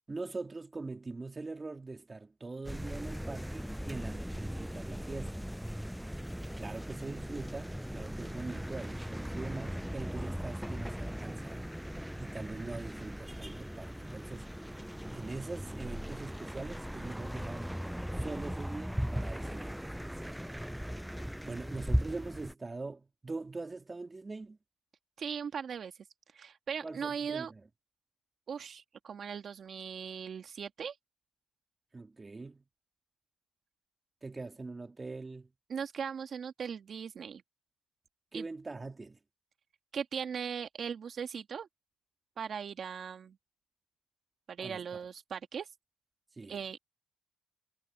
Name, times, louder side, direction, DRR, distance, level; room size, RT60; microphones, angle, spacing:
voice 1, 0.1-5.8 6.6-11.7 12.2-14.5 15.1-17.7 18.2-20.4 21.4-24.6 26.8-27.6 31.9-32.6 34.2-35.5 38.3-39.2 44.6-45.0 46.3-46.6, right 3 dB, 25° right, 2.9 m, -43 dB
sound 1, 2.6-22.5, equal, ahead, 0.3 m, -38 dB
voice 2, 25.2-25.9 26.3-27.5 28.5-31.0 35.7-37.4 38.3-38.5 39.9-41.7 42.4-43.4 44.5-45.7 46.5-46.8, right 7 dB, 55° right, 2.0 m, -39 dB
cardioid pair, 90°, 0 cm